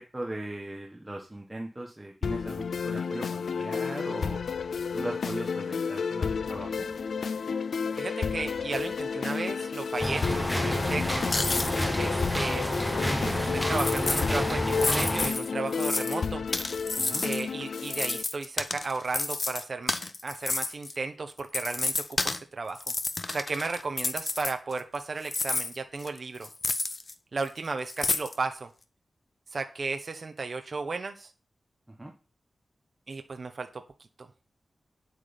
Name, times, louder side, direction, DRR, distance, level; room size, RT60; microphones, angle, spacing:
voice 1, 0.0-4.4 4.9-6.9 17.0-17.3 32.0-32.1, right 1 dB, 15° right, 1 dB, 1.3 m, -39 dB
sound 1, 2.2-18.2, left 5 dB, 85° left, 0.4 m, -31 dB
voice 2, 7.9-11.2 12.0-12.7 13.0-16.4 17.2-19.9 20.2-22.8 23.3-26.5 27.3-28.7 29.5-31.3 33.1-33.8 34.2-34.3, right 3 dB, 45° right, 6 dB, 1.0 m, -34 dB
sound 2, 10.0-15.3, left 1 dB, 5° left, 1.0 m, -29 dB
sound 3, 11.1-11.8 12.2-12.3 13.7-14.2 14.7-16.2 16.5-17.4 17.8-20.9 21.4-22.4 22.7-25.0 25.2-27.1 27.4-27.5 27.9-28.4, left 3 dB, 35° left, 0.8 m, -30 dB
9.3 x 8.3 x 5.2 m, 0.34 s
wide cardioid pair, 155°, 0 cm